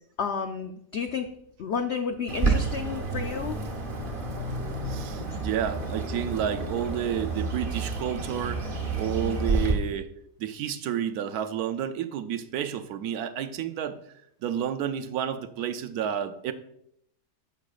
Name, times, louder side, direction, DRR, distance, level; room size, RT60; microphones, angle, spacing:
voice 1, 0.2-1.3 1.6-3.5 5.3-5.4 9.2-9.5, left 6 dB, 90° left, 0.5 m, -31 dB
Bird, 2.3-9.7, right 3 dB, 35° right, 1.1 m, -30 dB
voice 2, 4.9-14.0 14.4-16.5, right 9 dB, 70° right, 1.0 m, -31 dB
11.0 x 7.8 x 2.4 m
omnidirectional pair, 1.8 m